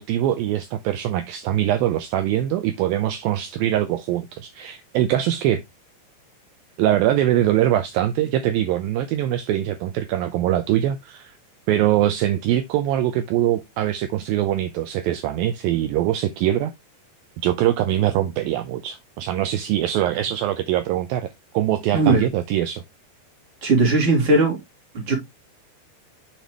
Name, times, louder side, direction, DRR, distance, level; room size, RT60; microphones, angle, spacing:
voice 1, 0.0-5.6 6.8-11.4 11.7-16.7 17.4-22.8, right 12 dB, 80° right, 2.1 m, -23 dB
voice 2, 23.6-24.6 25.1-25.2, right 3 dB, 35° right, 3.5 m, -18 dB
6.8 x 6.3 x 3.1 m
omnidirectional pair, 4.7 m